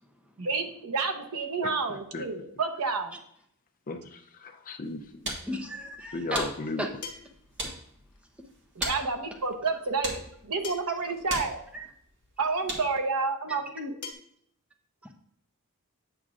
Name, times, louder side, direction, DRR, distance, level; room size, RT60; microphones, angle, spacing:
voice 1, 0.4-3.1 8.8-11.6 12.4-13.9, right 4 dB, 80° right, 0.9 m, -30 dB
voice 2, 1.6-2.3 3.9-5.4 6.1-6.9, left 3 dB, 40° left, 0.6 m, -36 dB
sound 1, 4.8-13.1, right 1 dB, 55° right, 1.7 m, -40 dB
voice 3, 5.5-6.5 6.8-6.9 7.6-7.7 8.4-8.5 8.8-8.9 11.7-11.9 15.0-15.1, equal, 5° right, 0.7 m, -34 dB
sound 2, 7.0-7.5 9.0-9.1 10.6-11.1 12.3-12.4 14.0-14.1, left 5 dB, 75° left, 1.2 m, -41 dB
8.8 x 6.2 x 2.5 m
head